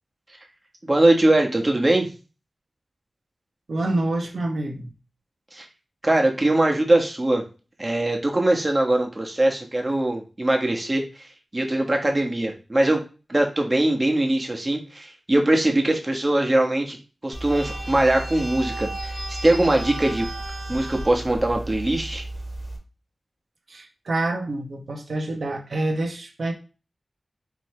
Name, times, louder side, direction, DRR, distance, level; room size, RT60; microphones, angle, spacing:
voice 1, 0.8-2.1 5.5-5.6 6.0-7.4 7.8-11.3 11.5-13.0 13.3-17.0 17.2-20.3 20.7-22.2, right 1 dB, 30° right, 1.2 m, -21 dB
voice 2, 3.7-4.9 23.7-26.5, right 2 dB, 70° right, 1.0 m, -27 dB
sound 1, 17.3-22.8, right 1 dB, 20° left, 2.1 m, -33 dB
4.7 x 3.1 x 3.2 m
wide cardioid pair, 60°, 0 cm